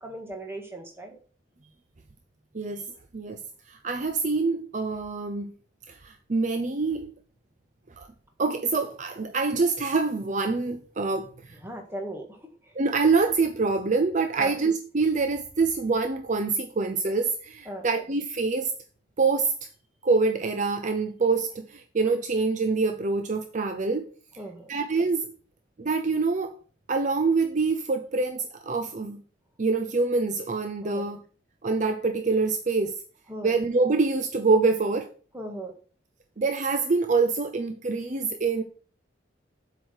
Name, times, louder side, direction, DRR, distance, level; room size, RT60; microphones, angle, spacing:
voice 1, 0.0-1.2 11.6-12.5 14.4-14.6 17.7-17.9 24.4-24.7 30.8-31.1 33.3-33.5 35.3-35.7, right 1 dB, 10° right, 1.7 m, -37 dB
voice 2, 2.5-2.9 3.1-3.4 3.7-5.5 5.9-7.1 8.0-8.1 8.4-11.6 12.7-18.7 19.2-19.5 20.0-24.1 24.7-25.3 25.8-26.6 26.9-29.2 29.6-31.2 31.6-33.0 33.4-35.1 36.4-38.6, right 4 dB, 40° right, 0.6 m, -25 dB
7.9 x 4.9 x 6.3 m
head